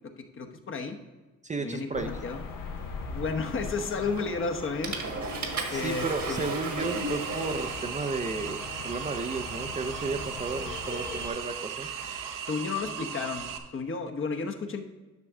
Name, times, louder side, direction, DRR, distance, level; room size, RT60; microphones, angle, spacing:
voice 1, 0.2-1.0 1.6-2.4 3.1-5.0 5.7-6.5 12.4-13.5 13.7-14.8, left 4 dB, 40° left, 3 dB, 1.0 m, -32 dB
voice 2, 1.4-2.1 5.7-11.9, right 3 dB, 25° right, 5 dB, 0.5 m, -33 dB
sound 1, 1.9-11.3, left 4 dB, 80° left, 1.4 m, -40 dB
Water / Toilet flush, 4.2-4.4 4.8-12.7, right 3 dB, 60° right, 1.4 m, -38 dB
sound 2, 6.8-13.6, right 8 dB, 80° right, 0.9 m, -37 dB
11.0 x 6.0 x 3.6 m, 1.2 s
cardioid pair, 105°, 32 cm